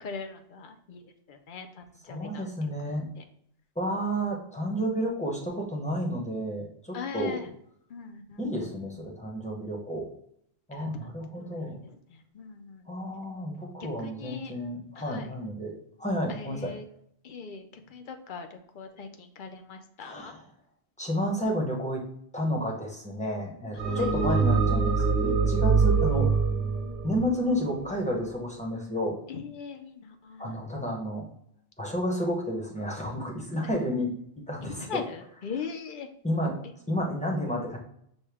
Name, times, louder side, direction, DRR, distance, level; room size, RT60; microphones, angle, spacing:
voice 1, 0.0-1.0 1.3-1.7 2.1-2.4 3.2-3.3 6.9-7.4 7.9-8.5 10.7-11.9 12.3-12.8 13.8-14.5 15.0-15.3 16.3-16.8 17.2-20.3 23.9-24.1 29.3-30.5 34.8-36.1, left 5 dB, 60° left, 6 dB, 0.6 m, -40 dB
voice 2, 2.1-3.1 3.8-7.4 8.4-10.1 10.7-11.8 12.9-15.7 16.0-16.7 20.0-20.4 21.0-22.0 22.3-26.3 27.0-29.2 30.4-31.3 31.8-34.1 34.5-34.9 36.2-36.6 36.9-37.8, equal, 5° left, -1 dB, 0.7 m, -31 dB
sound 1, 23.8-28.2, right 5 dB, 45° right, 1.1 m, -24 dB
6.2 x 2.1 x 3.4 m, 0.69 s
omnidirectional pair, 1.2 m